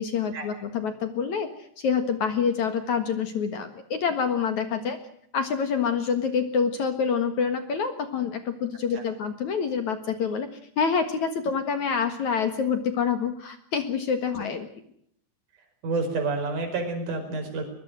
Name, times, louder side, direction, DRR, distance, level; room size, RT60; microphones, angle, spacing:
voice 1, 0.0-1.5 1.8-5.0 5.3-10.5 10.8-14.7, left 6 dB, 55° left, 9 dB, 2.4 m, -27 dB
voice 2, 15.8-17.6, right 3 dB, 45° right, 4 dB, 6.3 m, -29 dB
22.5 x 22.0 x 6.3 m, 0.69 s
omnidirectional pair, 5.1 m